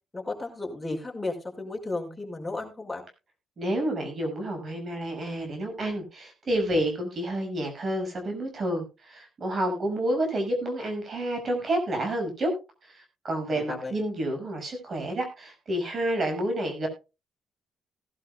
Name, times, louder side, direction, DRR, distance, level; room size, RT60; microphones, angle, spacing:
voice 1, 0.1-3.0 13.5-13.9, left 2 dB, 15° left, 1 dB, 5.5 m, -34 dB
voice 2, 3.6-12.5 12.8-16.9, right 1 dB, 45° right, 4 dB, 6.1 m, -29 dB
18.5 x 12.0 x 2.3 m, 0.28 s
cardioid pair, 90°, 0 cm